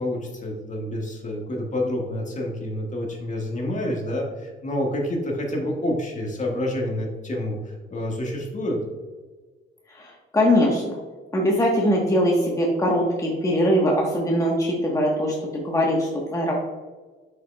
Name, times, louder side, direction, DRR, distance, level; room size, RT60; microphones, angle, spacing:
voice 1, 0.0-8.8, left 1 dB, 40° left, 0 dB, 1.7 m, -28 dB
voice 2, 9.9-10.8 11.3-16.5, equal, 15° left, -2 dB, 1.2 m, -21 dB
7.4 x 5.8 x 2.3 m, 1.3 s
cardioid pair, 90°, 20 cm